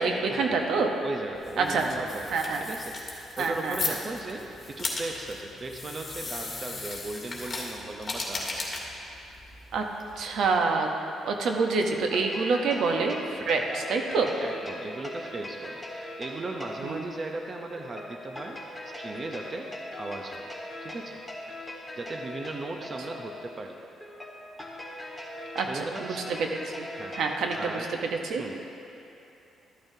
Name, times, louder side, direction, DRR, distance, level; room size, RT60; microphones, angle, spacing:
voice 1, 0.0-0.9 1.6-1.8 2.3-2.6 3.4-3.8 9.7-9.9 10.2-10.9 11.2-14.3 16.8-17.0 25.5-26.4 26.7-26.9 27.1-27.8 28.2-28.4, right 4 dB, 70° right, 3 dB, 0.9 m, -27 dB
voice 2, 1.0-8.8 14.4-18.6 18.8-20.5 20.8-21.2 21.6-23.8 25.7-26.3 26.9-27.9 28.4-28.7, right 2 dB, 35° right, 2 dB, 0.6 m, -38 dB
sound 1, 1.3-10.6, left 3 dB, 30° left, 1.8 m, -37 dB
electric child, 12.0-27.8, left 1 dB, ahead, 1.6 m, -41 dB
13.5 x 8.8 x 2.7 m, 2.8 s
cardioid pair, 90°, 0 cm